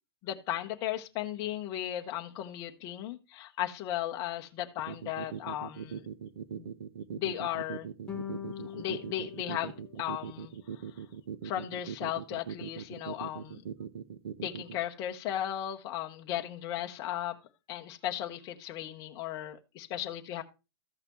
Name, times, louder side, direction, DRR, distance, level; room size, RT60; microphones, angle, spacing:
voice 1, 0.2-6.1 6.5-6.7 7.1-7.9 8.6-11.0 11.4-13.6 14.4-17.4 17.7-20.4, left 12 dB, 25° left, 4 dB, 0.9 m, -36 dB
sound 1, 4.8-14.8, right 7 dB, 70° right, 1.0 m, -40 dB
sound 2, 8.1-10.6, left 9 dB, 10° left, 1.2 m, -43 dB
14.0 x 5.8 x 3.0 m, 0.27 s
supercardioid pair, 165°, 13 cm